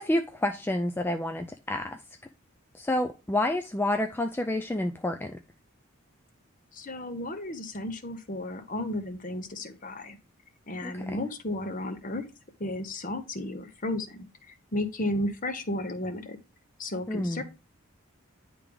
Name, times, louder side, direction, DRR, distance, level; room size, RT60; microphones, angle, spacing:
voice 1, 0.0-2.0 2.7-5.4 10.8-11.3 17.1-17.4, left 1 dB, 10° left, 0.3 m, -29 dB
voice 2, 6.7-10.2 10.7-12.2 12.6-16.4 16.8-17.4, left 1 dB, 40° left, 0.9 m, -33 dB
10.0 x 3.4 x 3.4 m
head